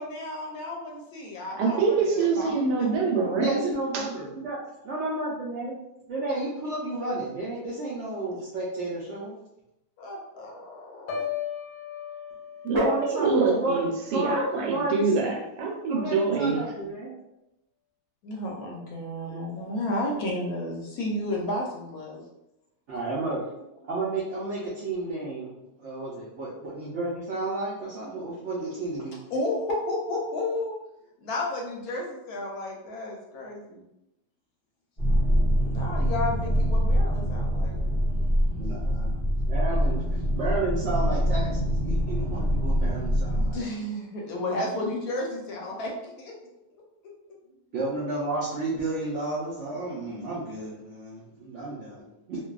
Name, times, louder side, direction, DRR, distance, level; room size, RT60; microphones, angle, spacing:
voice 1, 0.0-3.4 10.0-11.2 13.3-13.6 18.2-22.2 29.3-30.7 31.2-33.8 35.6-38.1 43.4-46.3, left 1 dB, 70° left, -1 dB, 1.0 m, -32 dB
voice 2, 1.6-3.6 3.9-4.1 12.6-16.6, right 4 dB, 85° right, 1 dB, 1.2 m, -25 dB
voice 3, 3.4-4.6 4.9-5.8 6.1-9.3 12.7-13.8 14.1-15.0 15.9-17.1 22.9-23.4 23.9-29.2 38.6-39.1 39.5-43.6 47.7-52.4, right 2 dB, 70° right, -7 dB, 0.7 m, -31 dB
Piano, 11.1-15.0 15.4-15.8, left 8 dB, 85° left, 1.2 m, -38 dB
sound 1, 35.0-43.5, equal, 20° left, 0.8 m, -24 dB
2.6 x 2.2 x 2.3 m, 0.87 s
omnidirectional pair, 1.7 m